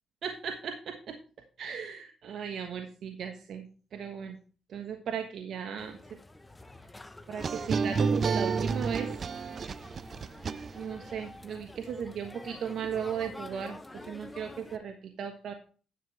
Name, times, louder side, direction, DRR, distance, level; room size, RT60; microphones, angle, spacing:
voice 1, 0.2-1.2 1.6-3.6 3.9-4.4 4.7-6.0 7.3-9.1 10.7-15.5, right 7 dB, 65° right, 4 dB, 1.3 m, -36 dB
sound 1, 5.8-14.8, left 2 dB, 15° left, 0.9 m, -48 dB
sound 2, 7.4-11.1, right 5 dB, 45° right, 0.4 m, -30 dB
11.0 x 7.5 x 3.3 m, 0.38 s
cardioid pair, 90°, 0 cm